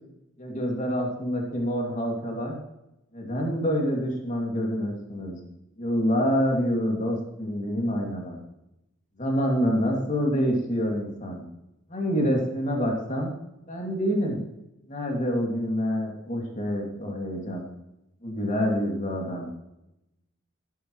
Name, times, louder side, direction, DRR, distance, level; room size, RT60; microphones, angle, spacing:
voice 1, 0.4-2.6 3.1-5.4 5.8-8.4 9.2-11.4 11.9-13.3 13.7-14.4 14.9-17.7 18.2-19.5, equal, 35° left, 0 dB, 2.6 m, -27 dB
12.5 x 11.0 x 3.2 m, 0.89 s
head